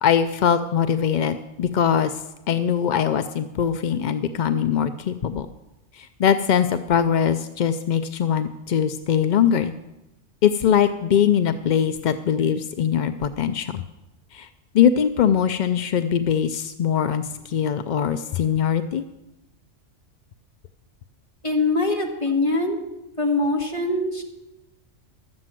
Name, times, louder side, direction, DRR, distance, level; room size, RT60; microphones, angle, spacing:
voice 1, 0.0-5.5 5.9-9.7 10.4-13.8 14.3-14.5 14.7-19.0, left 8 dB, 60° left, 10 dB, 0.4 m, -22 dB
voice 2, 21.4-22.8 23.2-24.2, left 2 dB, 25° left, 1 dB, 1.7 m, -23 dB
12.5 x 7.8 x 7.5 m, 0.98 s
omnidirectional pair, 1.3 m